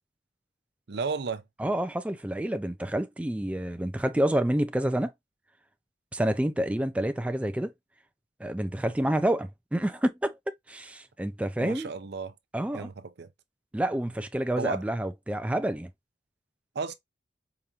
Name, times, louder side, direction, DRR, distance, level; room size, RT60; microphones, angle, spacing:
voice 1, 0.9-1.4 11.6-12.3 12.7-13.3 14.6-14.8 16.7-16.9, right 4 dB, 65° right, 0.6 m, -33 dB
voice 2, 1.6-5.1 6.1-7.7 8.4-10.4 10.7-11.9 12.5-12.9 13.7-15.9, right 1 dB, 5° right, 0.3 m, -28 dB
4.8 x 2.5 x 2.7 m
head